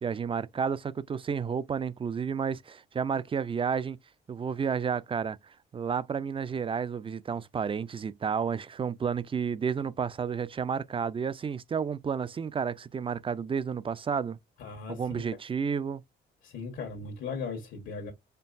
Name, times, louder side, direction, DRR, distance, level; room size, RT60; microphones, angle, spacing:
voice 1, 0.0-4.0 4.3-5.4 5.7-14.4 14.9-16.0, right 6 dB, 25° right, 0.4 m, -31 dB
voice 2, 14.6-15.3 16.4-18.1, left 5 dB, 75° left, 1.3 m, -38 dB
4.4 x 3.2 x 2.6 m
cardioid pair, 90°, 20 cm